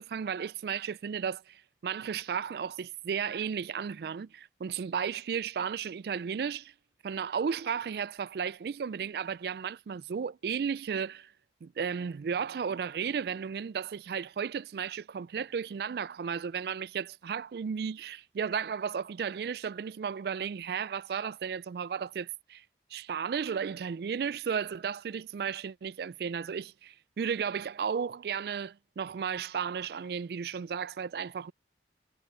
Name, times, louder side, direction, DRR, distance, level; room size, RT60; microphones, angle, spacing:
voice 1, 0.0-6.7 7.0-11.3 11.6-22.6 22.9-31.5, right 7 dB, 60° right, 0.3 m, -34 dB
head